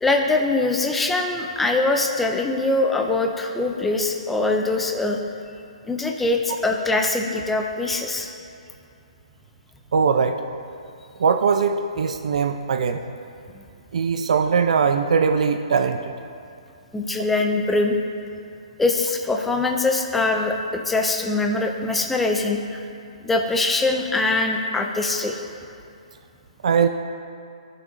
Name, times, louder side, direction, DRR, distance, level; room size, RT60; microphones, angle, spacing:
voice 1, 0.0-5.2 5.9-8.3 13.5-13.6 16.9-18.0 18.8-22.8 23.2-25.4, left 2 dB, 5° left, 2 dB, 0.3 m, -23 dB
voice 2, 9.9-10.4 11.2-13.0 13.9-16.1 26.6-26.9, right 6 dB, 65° right, 7 dB, 0.5 m, -20 dB
15.5 x 5.9 x 2.6 m, 2.5 s
hypercardioid pair, 170°, 4 cm